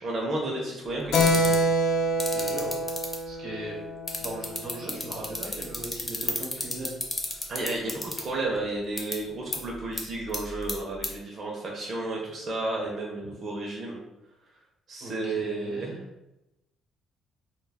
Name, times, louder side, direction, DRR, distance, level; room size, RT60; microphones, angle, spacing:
voice 1, 0.0-1.7 7.5-14.0 14.9-16.0, right 2 dB, 40° right, -2 dB, 0.5 m, -32 dB
Keyboard (musical), 1.1-5.2, equal, 90° left, 0.4 m, -26 dB
sound 1, 1.1-1.6 2.2-3.1 4.1-8.2 9.0-9.1 9.5-9.6 10.0-10.1 10.3-10.7 11.0-11.1, left 2 dB, 20° left, 0.5 m, -29 dB
voice 2, 2.3-2.7 3.2-3.8 4.2-7.0 7.2-7.5 9.3-9.4 13.2-13.3 15.0-16.0, right 1 dB, 85° right, -6 dB, 0.8 m, -39 dB
2.1 x 2.0 x 3.3 m, 0.92 s
cardioid pair, 120°, 0 cm